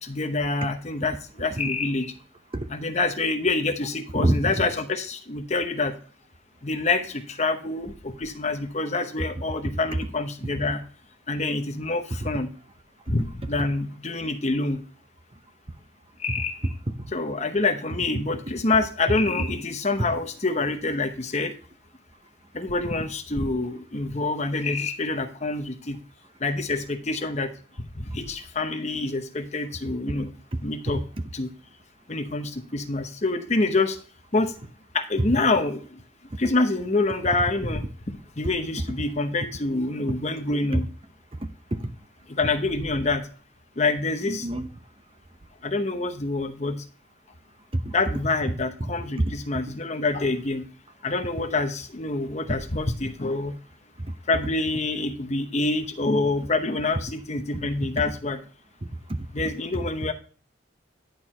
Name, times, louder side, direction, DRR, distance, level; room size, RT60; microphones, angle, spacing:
voice 1, 0.0-2.1 2.7-5.9 6.6-10.8 11.3-12.5 13.1-14.8 16.2-16.7 17.1-21.5 22.5-26.0 26.4-27.5 27.9-30.3 30.6-31.0 31.3-31.5 32.1-34.0 34.3-34.5 34.9-35.8 36.4-37.8 38.4-40.8 42.3-43.2 43.8-44.5 45.6-46.8 47.9-50.6 51.0-53.6 54.3-58.4 59.3-60.1, left 3 dB, 35° left, 0.9 m, -26 dB
voice 2, 4.1-4.7 12.2-12.3 17.0-17.1 30.2-30.3 40.7-40.8 41.4-41.9 44.3-44.7 47.7-47.9 48.8-49.3 54.0-54.1 58.8-59.3, right 1 dB, 25° right, 0.7 m, -27 dB
10.5 x 4.6 x 4.4 m
head